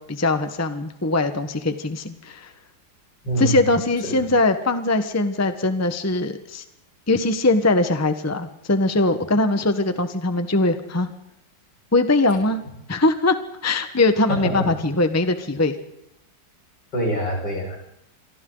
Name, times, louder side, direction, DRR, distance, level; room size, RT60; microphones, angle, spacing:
voice 1, 0.1-2.5 3.4-6.6 7.1-11.1 11.9-12.6 12.9-13.3 13.6-15.7, left 2 dB, 10° left, 8 dB, 1.1 m, -21 dB
voice 2, 3.2-3.6 14.3-14.6 16.9-17.8, right 1 dB, 75° left, 0 dB, 6.9 m, -24 dB
28.0 x 24.0 x 4.0 m, 0.80 s
omnidirectional pair, 2.0 m